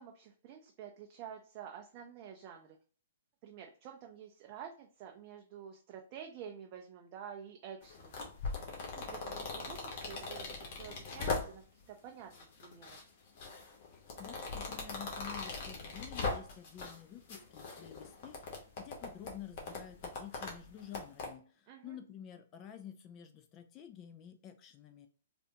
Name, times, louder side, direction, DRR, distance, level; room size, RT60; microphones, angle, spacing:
voice 1, 0.0-2.8 3.4-8.2 8.7-12.3 12.6-13.0 21.7-22.0, right 8 dB, 40° right, 3 dB, 0.4 m, -49 dB
sound 1, 7.8-11.8 12.3-13.0 13.4-17.0 17.3-21.3, left 3 dB, 50° left, 1.0 m, -40 dB
voice 2, 13.9-25.1, left 10 dB, 30° left, 7 dB, 0.4 m, -50 dB
3.3 x 2.5 x 2.8 m, 0.42 s
figure-of-eight pair, 120°, 0 cm